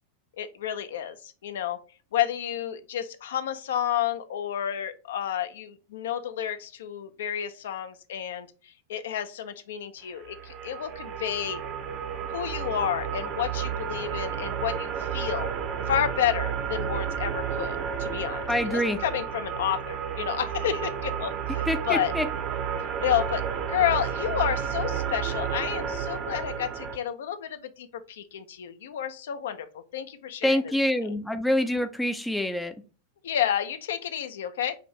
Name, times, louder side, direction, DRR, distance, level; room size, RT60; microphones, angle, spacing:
voice 1, 0.4-1.2 1.4-1.8 2.1-11.6 12.2-15.5 15.9-22.1 23.0-23.4 23.7-29.7 29.9-30.6 33.2-34.8, left 10 dB, 60° left, 10 dB, 0.5 m, -30 dB
sound 1, 10.2-27.0, right 7 dB, 35° right, 0.7 m, -31 dB
voice 2, 18.5-19.0 21.7-22.3 30.4-32.7, left 1 dB, 5° left, 8 dB, 0.4 m, -26 dB
4.9 x 2.5 x 3.1 m, 0.34 s
figure-of-eight pair, 90°, 0 cm